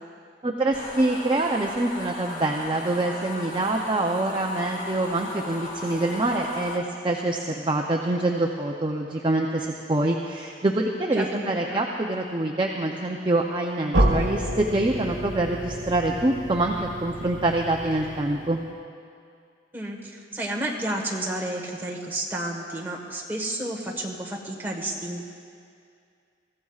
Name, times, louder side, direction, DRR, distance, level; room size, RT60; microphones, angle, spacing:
voice 1, 0.4-18.6, right 2 dB, 25° right, 0 dB, 0.5 m, -25 dB
sound 1, 0.7-6.8, left 1 dB, 45° left, 1.4 m, -37 dB
voice 2, 11.2-11.8 19.7-25.2, right 1 dB, 10° right, -2 dB, 1.4 m, -31 dB
sound 2, 13.9-18.7, right 1 dB, 90° right, 1.2 m, -28 dB
22.0 x 15.0 x 2.4 m, 2.3 s
head